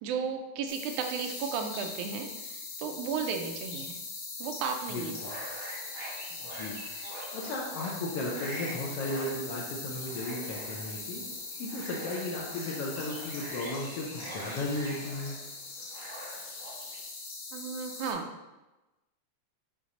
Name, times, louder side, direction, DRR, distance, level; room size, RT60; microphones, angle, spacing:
voice 1, 0.0-4.0 4.4-5.1 17.5-18.3, right 6 dB, 80° right, 5 dB, 2.0 m, -34 dB
sound 1, 0.7-18.1, left 3 dB, 60° left, 1.9 m, -41 dB
voice 2, 4.9-5.3 6.3-6.7 7.3-11.2 11.6-15.3, left 2 dB, 80° left, -3 dB, 1.4 m, -35 dB
sound 2, 5.1-17.0, right 1 dB, 35° right, 1.7 m, -45 dB
6.4 x 3.7 x 4.1 m, 1.0 s
omnidirectional pair, 3.6 m